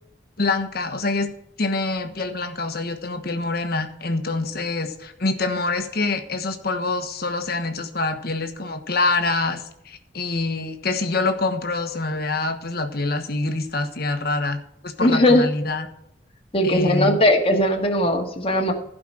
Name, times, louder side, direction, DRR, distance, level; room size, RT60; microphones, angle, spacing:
voice 1, 0.4-1.3 1.6-15.9 16.6-17.2, left 3 dB, 60° left, 7 dB, 1.4 m, -25 dB
voice 2, 15.0-15.4 16.5-18.7, left 1 dB, 35° left, 2 dB, 1.8 m, -18 dB
15.5 x 5.2 x 6.3 m, 0.80 s
head